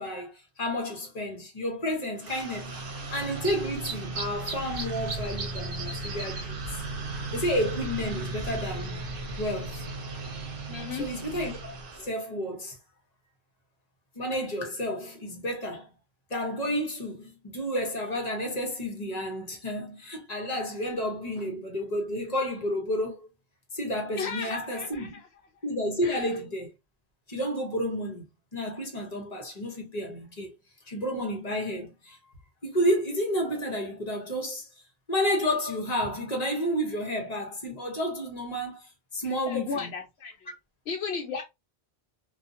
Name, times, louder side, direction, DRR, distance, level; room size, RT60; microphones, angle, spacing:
voice 1, 0.0-2.8 3.1-6.6 7.3-9.0 9.4-9.8 10.9-12.8 14.1-15.9 16.3-23.3 23.7-25.2 25.6-26.7 27.3-28.3 28.5-30.5 30.9-32.2 32.6-34.7 35.1-39.9, equal, 40° left, 1.0 m, -31 dB
sound 1, 2.2-12.1, right 2 dB, 60° right, 0.9 m, -35 dB
voice 2, 10.7-11.1 24.2-25.1 26.0-26.3 39.2-40.5 40.9-41.4, left 5 dB, 80° left, 0.9 m, -34 dB
2.7 x 2.4 x 2.5 m
omnidirectional pair, 1.1 m